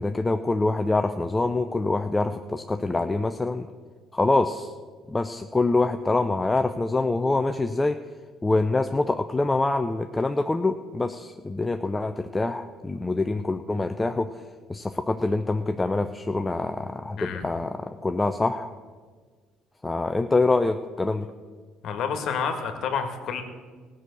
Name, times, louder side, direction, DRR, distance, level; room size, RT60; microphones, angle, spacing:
voice 1, 0.0-3.7 4.1-4.7 5.1-8.0 8.4-14.4 14.7-18.7 19.8-21.3, left 2 dB, 15° left, 7 dB, 0.5 m, -25 dB
voice 2, 21.8-23.4, left 6 dB, 60° left, 6 dB, 1.6 m, -29 dB
15.5 x 6.3 x 8.2 m, 1.5 s
supercardioid pair, 85°, 0 cm